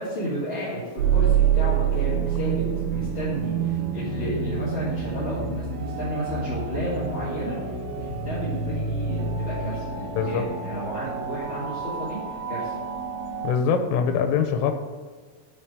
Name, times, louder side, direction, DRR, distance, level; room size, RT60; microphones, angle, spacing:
voice 1, 0.0-7.6 8.0-12.8, equal, 30° left, -11 dB, 2.6 m, -32 dB
sound 1, 1.0-13.5, right 7 dB, 75° right, 3.4 m, -27 dB
voice 2, 10.2-10.5 13.4-14.7, left 6 dB, 90° left, 6 dB, 3.6 m, -23 dB
12.0 x 5.4 x 5.2 m, 1.5 s
omnidirectional pair, 5.9 m